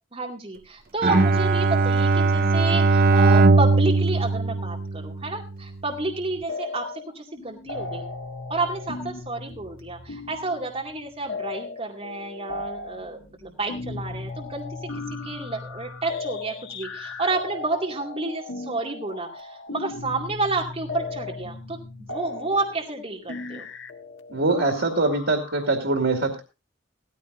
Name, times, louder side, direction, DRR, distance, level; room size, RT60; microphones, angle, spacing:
voice 1, 0.1-8.0 8.5-14.6 15.1-23.7, right 3 dB, 30° right, 0 dB, 2.3 m, -30 dB
Bowed string instrument, 1.0-5.4, right 3 dB, 50° right, 0.6 m, -19 dB
sound 1, 6.5-7.1 7.4-25.7, left 3 dB, 85° left, 1.5 m, -36 dB
voice 2, 24.3-26.4, right 3 dB, 90° right, 4 dB, 2.3 m, -23 dB
16.5 x 14.5 x 2.6 m, 0.28 s
head